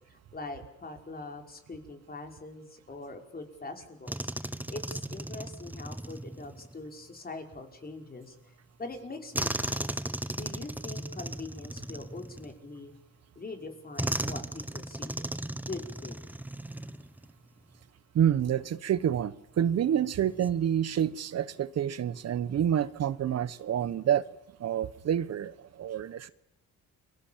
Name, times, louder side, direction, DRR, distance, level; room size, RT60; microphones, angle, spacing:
voice 1, 0.0-4.3 4.7-9.9 10.3-12.9 13.4-15.3 15.7-16.2, left 3 dB, 30° left, 4 dB, 5.4 m, -43 dB
sound 1, 4.1-6.8 9.3-12.9 14.0-17.3 17.6-17.8 20.2-20.5, right 1 dB, 5° right, 1.1 m, -36 dB
voice 2, 18.1-24.2 24.6-26.3, right 9 dB, 55° right, 16 dB, 1.1 m, -28 dB
29.5 x 24.0 x 7.4 m, 0.82 s
cardioid pair, 90°, 30 cm